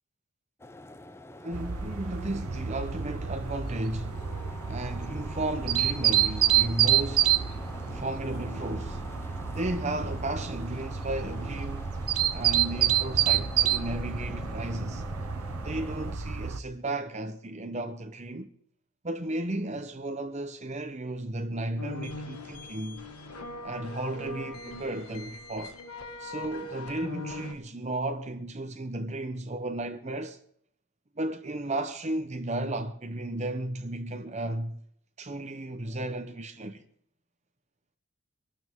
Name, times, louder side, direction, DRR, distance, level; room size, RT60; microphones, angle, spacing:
sound 1, 0.6-16.2, left 1 dB, 10° left, 0.5 m, -45 dB
voice 1, 1.4-4.3 4.7-7.4 7.8-9.0 9.5-11.9 12.3-15.1 15.6-18.5 19.0-23.0 23.6-25.7 26.2-30.4 31.2-34.8 35.2-36.8, right 1 dB, 30° right, 0.8 m, -34 dB
sound 2, 1.5-16.6, right 10 dB, 85° right, 0.9 m, -29 dB
sound 3, 21.8-27.5, left 2 dB, 85° left, 1.9 m, -40 dB
24.5 x 12.0 x 3.6 m
head